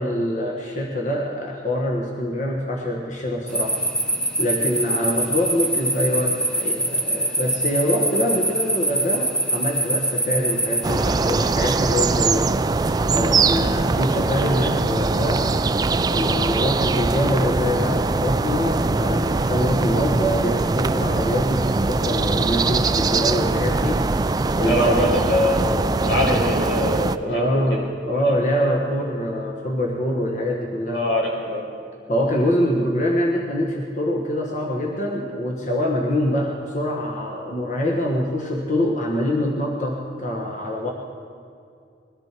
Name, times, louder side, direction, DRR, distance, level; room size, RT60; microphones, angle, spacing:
voice 1, 0.0-3.8 4.4-12.5 13.1-15.5 16.1-24.1 24.6-25.1 27.2-31.1 32.1-40.9, left 1 dB, 40° left, -1 dB, 1.3 m, -24 dB
sound 1, 3.5-11.5, right 1 dB, 5° left, 1.0 m, -24 dB
sound 2, 10.8-27.2, right 3 dB, 20° right, 0.3 m, -22 dB
voice 2, 24.6-27.6 28.1-28.3 30.9-31.6, left 1 dB, 90° left, -3 dB, 5.1 m, -23 dB
21.0 x 14.5 x 4.5 m, 2.4 s
head